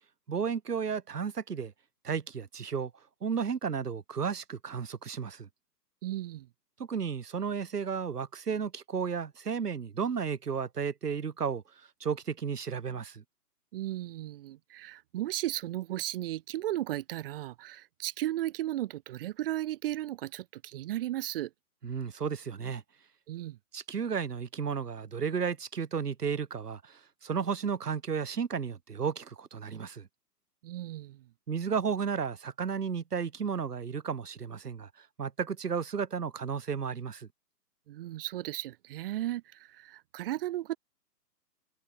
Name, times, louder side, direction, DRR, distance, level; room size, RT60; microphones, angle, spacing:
voice 1, 0.3-1.7 2.0-2.9 3.2-5.5 6.8-11.6 12.0-13.2 21.8-22.8 23.7-30.1 31.5-37.3, right 6 dB, 70° right, 7.5 m, -33 dB
voice 2, 6.0-6.5 13.7-21.5 23.3-23.6 30.6-31.2 37.9-40.8, right 14 dB, 35° right, 3.3 m, -35 dB
hypercardioid pair, 150°, 48 cm